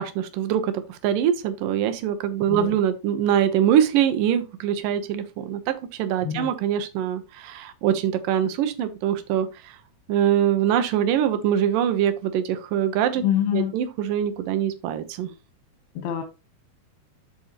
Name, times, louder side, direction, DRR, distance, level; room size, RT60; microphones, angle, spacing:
voice 1, 0.0-9.8 10.1-13.2 13.5-15.3, right 9 dB, 70° right, 9 dB, 2.3 m, -23 dB
voice 2, 13.2-13.7 16.0-16.2, left 10 dB, 90° left, 5 dB, 3.0 m, -25 dB
12.5 x 4.3 x 2.9 m, 0.28 s
omnidirectional pair, 4.3 m